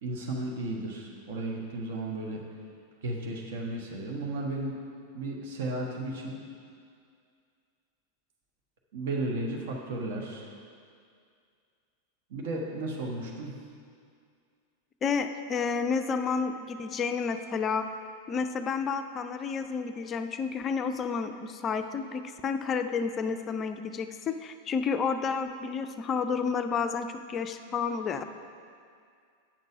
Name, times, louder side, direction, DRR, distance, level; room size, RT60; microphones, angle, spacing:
voice 1, 0.0-2.4 3.0-4.8 5.1-6.4 8.9-10.5 12.3-13.6, right 2 dB, 55° right, -1 dB, 1.3 m, -34 dB
voice 2, 15.0-17.9 18.3-28.2, left 5 dB, 25° left, 8 dB, 0.4 m, -30 dB
9.1 x 6.7 x 4.9 m, 2.3 s
figure-of-eight pair, 90°, 0 cm